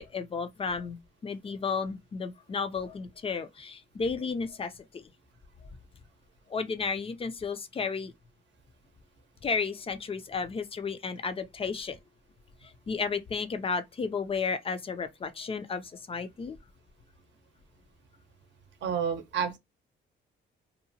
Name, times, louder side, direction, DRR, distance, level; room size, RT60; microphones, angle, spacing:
voice 1, 0.0-5.1 6.5-8.1 9.4-12.0 12.6-16.6, left 5 dB, 30° left, 0.4 m, -33 dB
voice 2, 18.8-19.6, right 7 dB, 65° right, 0.7 m, -29 dB
2.8 x 2.1 x 2.7 m
cardioid pair, 90°, 20 cm